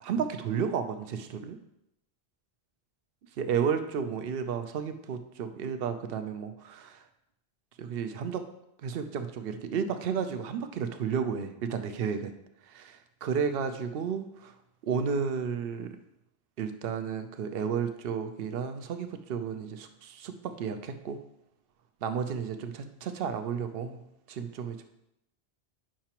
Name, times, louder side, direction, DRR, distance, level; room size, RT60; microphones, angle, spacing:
voice 1, 0.0-1.6 3.4-7.0 7.8-8.4 8.8-12.3 12.7-14.5 14.8-15.9 16.6-21.2 22.0-24.0 24.3-24.9, right 6 dB, 70° right, 8 dB, 0.8 m, -32 dB
8.7 x 5.7 x 2.9 m, 0.81 s
omnidirectional pair, 1.1 m